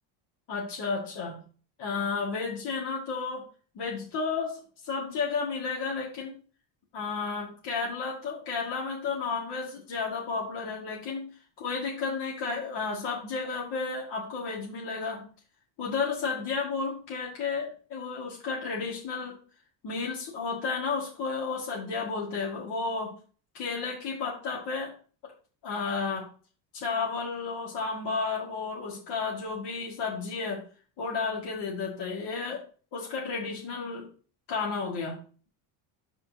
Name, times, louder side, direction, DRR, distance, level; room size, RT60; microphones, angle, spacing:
voice 1, 0.5-1.4 1.8-3.4 3.7-6.3 6.9-11.3 11.6-15.2 15.8-19.4 19.8-23.1 23.5-24.9 25.6-26.3 26.7-30.6 31.0-32.6 32.9-34.1 34.5-35.2, left 4 dB, 50° left, -3 dB, 2.2 m, -32 dB
12.5 x 4.3 x 2.8 m, 0.39 s
cardioid pair, 135°, 50 cm